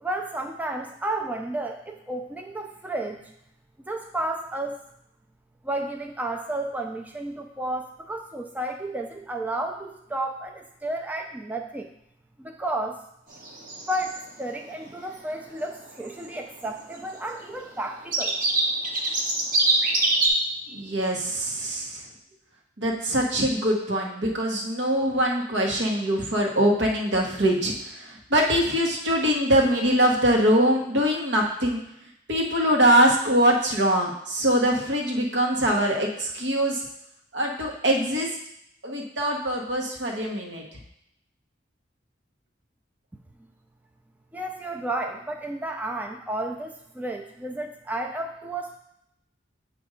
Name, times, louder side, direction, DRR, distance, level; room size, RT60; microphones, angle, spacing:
voice 1, 0.0-3.3 3.8-4.8 5.6-11.9 12.4-13.0 13.9-18.4 44.3-48.8, right 1 dB, 10° right, 3 dB, 0.3 m, -32 dB
sound 1, 13.3-14.2 14.5-14.6 14.7-15.0 15.3-15.4 15.6-16.3 16.6-17.4 17.8-17.9 18.1-20.3, right 2 dB, 50° right, 0.9 m, -24 dB
voice 2, 20.7-22.0 22.8-31.8 32.3-36.8 37.3-38.3 38.8-40.6, equal, 80° right, 0 dB, 1.1 m, -23 dB
7.5 x 2.6 x 4.8 m, 0.77 s
head